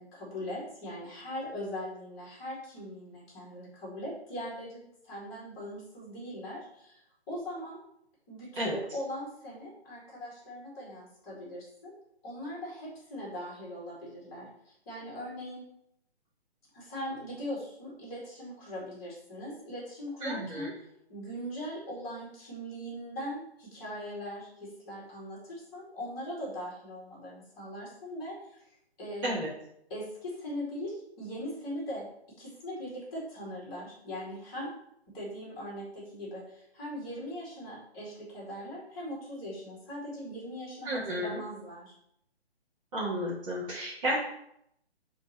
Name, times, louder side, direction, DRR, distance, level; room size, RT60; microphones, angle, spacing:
voice 1, 0.0-7.0 7.3-7.8 8.3-11.9 12.2-15.6 16.7-20.7 21.1-28.6 29.0-29.3 29.9-32.1 32.4-34.7 35.1-41.9, equal, 15° left, -6 dB, 2.4 m, -40 dB
voice 2, 20.2-20.7 29.2-29.5 40.8-41.4 42.9-44.2, equal, 30° right, -11 dB, 1.9 m, -32 dB
6.9 x 3.7 x 4.4 m, 0.75 s
figure-of-eight pair, 140°, 32 cm